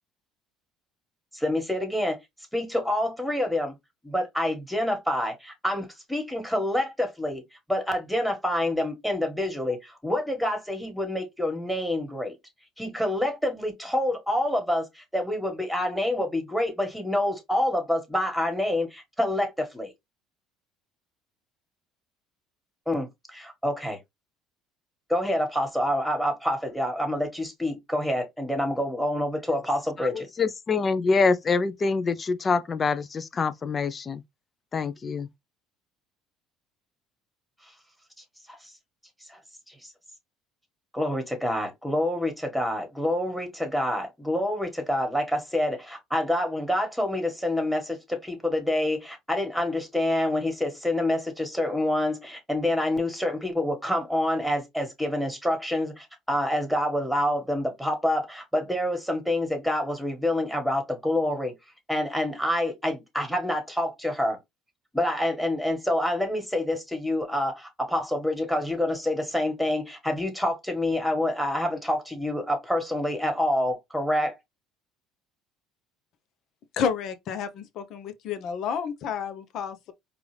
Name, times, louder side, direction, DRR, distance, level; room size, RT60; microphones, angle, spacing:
voice 1, 1.3-2.2 2.5-3.8 4.0-7.4 7.7-12.4 12.8-19.9 22.9-24.0 25.1-30.3 38.5-38.6 39.3-39.4 39.7-39.9 40.9-61.6 61.9-64.4 64.9-74.4, left 1 dB, ahead, 1.6 m, -27 dB
voice 2, 30.0-34.2 34.7-35.3, left 4 dB, 30° left, 0.6 m, -25 dB
voice 3, 76.7-79.9, left 7 dB, 60° left, 0.9 m, -30 dB
4.5 x 2.6 x 3.3 m
supercardioid pair, 85°, 0 cm